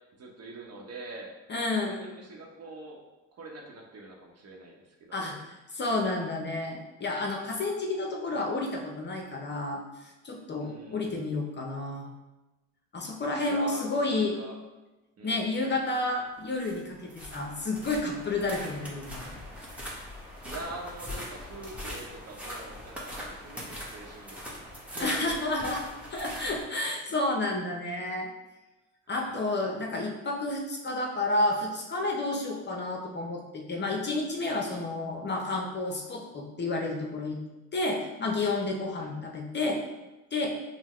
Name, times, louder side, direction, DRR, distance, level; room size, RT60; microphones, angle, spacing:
voice 1, 0.2-3.0 3.3-5.4 10.6-11.3 13.4-14.6 15.2-15.5 20.4-24.5 24.9-25.4 29.1-29.5 39.0-39.3, right 2 dB, 40° right, 0 dB, 1.0 m, -44 dB
voice 2, 1.5-2.0 5.1-5.3 5.7-12.1 12.9-14.3 15.2-19.3 25.0-25.8 26.1-28.3 29.1-37.4 37.7-39.8 40.3-40.5, left 2 dB, 30° left, 1 dB, 0.7 m, -30 dB
sound 1, 16.4-26.6, equal, 5° right, 1.1 m, -41 dB
5.5 x 2.2 x 3.1 m, 1.1 s
hypercardioid pair, 65°, 38 cm